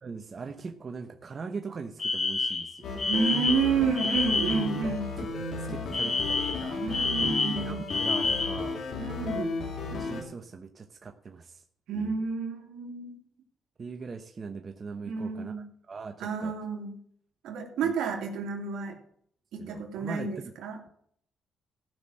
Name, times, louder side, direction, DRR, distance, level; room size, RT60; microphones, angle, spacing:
voice 1, 0.0-3.0 5.2-5.3 5.6-6.8 7.2-7.3 7.6-8.8 9.9-11.6 11.9-12.1 13.8-15.5 15.9-16.5 17.8-17.9 19.6-20.3, right 4 dB, 40° right, 6 dB, 1.0 m, -40 dB
Alarm, 2.0-4.7 5.9-8.7, left 3 dB, 40° left, 2.5 m, -29 dB
sound 1, 2.8-10.2, left 4 dB, 65° left, 3.0 m, -34 dB
voice 2, 3.1-5.1 6.8-7.8 9.0-9.6 11.9-13.2 15.1-15.6 16.2-17.0 17.4-19.0 19.5-20.9, right 5 dB, 80° right, 2 dB, 2.4 m, -30 dB
14.5 x 6.0 x 7.6 m, 0.65 s
cardioid pair, 90°, 0 cm